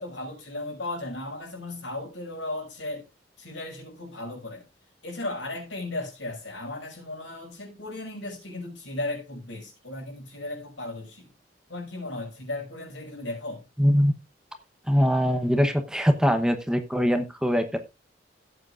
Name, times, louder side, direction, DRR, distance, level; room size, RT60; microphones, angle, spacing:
voice 1, 0.0-3.1 3.4-4.6 5.0-11.3 11.7-13.6, left 2 dB, 85° left, 6.0 m, -36 dB
voice 2, 13.8-14.1 14.9-17.8, equal, 5° right, 0.9 m, -22 dB
17.0 x 8.1 x 2.5 m
head